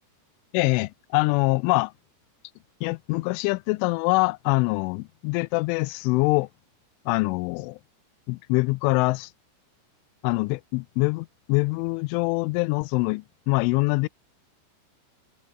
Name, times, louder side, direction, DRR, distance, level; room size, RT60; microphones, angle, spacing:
voice 1, 0.5-1.9 2.8-6.5 7.1-7.8 8.3-9.3 10.2-14.1, left 25 dB, 90° left, 3.0 m, -24 dB
omnidirectional pair, 5.4 m